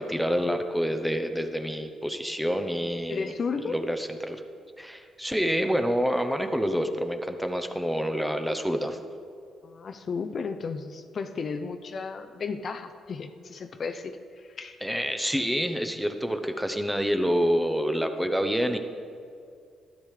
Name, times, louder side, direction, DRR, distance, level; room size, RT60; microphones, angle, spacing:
voice 1, 0.0-3.3 3.6-4.4 4.8-9.0 14.8-18.8, equal, ahead, 7 dB, 0.7 m, -27 dB
voice 2, 3.1-3.8 9.6-14.8, left 5 dB, 50° left, 8 dB, 0.5 m, -34 dB
12.5 x 10.5 x 3.3 m, 2.3 s
cardioid pair, 90°, 0 cm